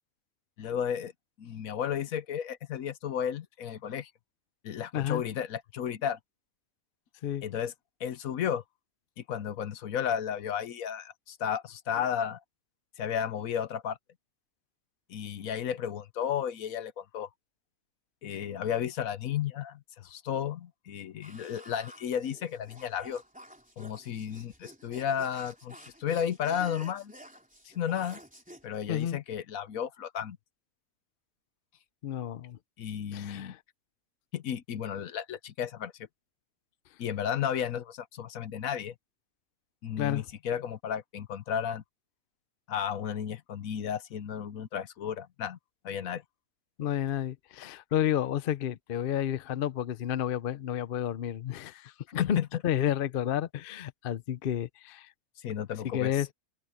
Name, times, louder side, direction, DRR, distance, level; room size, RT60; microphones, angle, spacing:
voice 1, 0.6-1.1 1.4-4.1 4.6-6.2 7.4-7.7 8.0-8.6 9.2-12.4 13.0-14.0 15.1-17.3 18.2-23.2 23.8-27.1 27.6-28.2 28.6-30.4 32.8-33.5 34.3-35.9 37.0-38.9 39.8-41.8 42.7-45.6 45.8-46.2 52.2-52.5 55.4-56.1, left 9 dB, 70° left, 1.2 m, -33 dB
sound 1, 21.2-28.7, equal, 5° right, 3.3 m, -51 dB
voice 2, 28.9-29.2 32.0-32.6 33.1-33.6 40.0-40.3 46.8-52.4 52.6-55.1 55.8-56.3, left 10 dB, 55° left, 0.6 m, -31 dB
open air
omnidirectional pair, 1.6 m